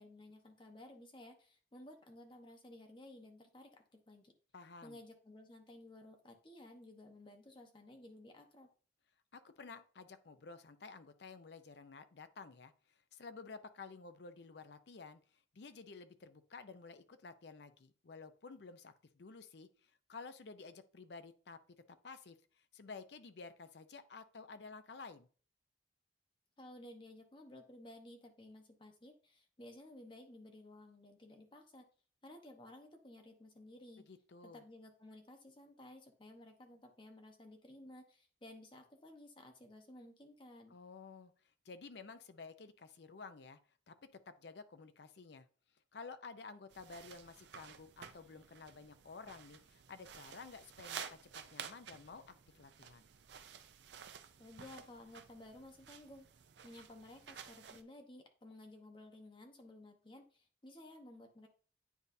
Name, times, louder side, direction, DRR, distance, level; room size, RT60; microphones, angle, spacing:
voice 1, 0.0-4.3 4.8-8.7 26.6-31.9 32.2-34.1 34.4-40.7 54.4-56.3 56.6-61.5, left 1 dB, 25° left, 4 dB, 0.9 m, -55 dB
voice 2, 4.5-5.0 9.3-15.2 15.5-21.6 21.9-25.3 34.1-34.6 40.7-41.3 41.6-43.6 43.9-45.5 45.9-53.1, left 4 dB, 65° left, 10 dB, 0.5 m, -52 dB
sound 1, 46.7-57.8, right 7 dB, 70° right, 0.5 m, -52 dB
9.4 x 4.0 x 2.6 m, 0.41 s
head